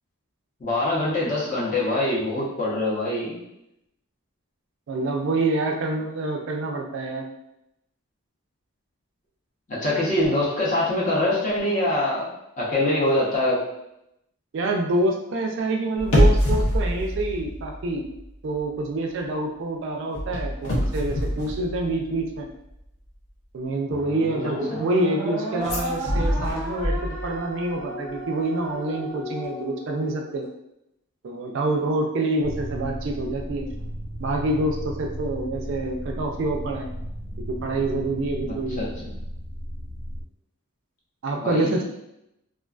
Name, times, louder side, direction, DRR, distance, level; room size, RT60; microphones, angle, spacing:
voice 1, 0.6-3.3 9.7-12.2 12.6-13.6 24.7-24.8 38.5-39.1 41.4-41.8, left 1 dB, 35° left, -6 dB, 0.7 m, -24 dB
voice 2, 4.9-7.3 14.5-18.0 18.4-22.5 23.5-30.4 31.2-33.7 34.2-36.9 37.5-39.0 41.2-41.8, right 2 dB, 55° right, 2 dB, 0.3 m, -27 dB
sound 1, 16.0-18.3 18.5-18.8 20.1-22.4 25.6-27.5 27.8-27.9, equal, 80° left, 0.7 m, -24 dB
sound 2, 23.9-30.4, equal, 15° right, 0.6 m, -34 dB
sound 3, 32.4-40.2, equal, 60° left, 1.2 m, -35 dB
2.4 x 2.3 x 2.3 m, 0.84 s
head